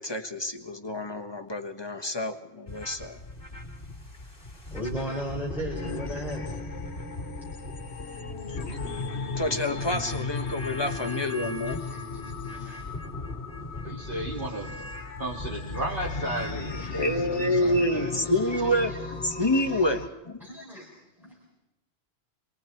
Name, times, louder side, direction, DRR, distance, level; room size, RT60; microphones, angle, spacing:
voice 1, 0.0-3.2 9.4-11.8 16.7-18.9 19.2-20.4, left 1 dB, 25° left, 4 dB, 1.3 m, -28 dB
sound 1, 2.7-17.2, left 2 dB, 55° left, 3.1 m, -40 dB
voice 2, 4.7-6.5 11.7-12.8 16.8-17.0 17.9-18.4 19.4-19.8 20.4-20.9 21.2-21.3, equal, ahead, -4 dB, 4.2 m, -37 dB
sound 2, 5.8-20.1, left 4 dB, 80° left, 1.4 m, -37 dB
voice 3, 13.8-14.7 15.2-18.2, right 1 dB, 50° right, -1 dB, 3.7 m, -34 dB
26.5 x 22.5 x 4.5 m, 0.95 s
omnidirectional pair, 1.1 m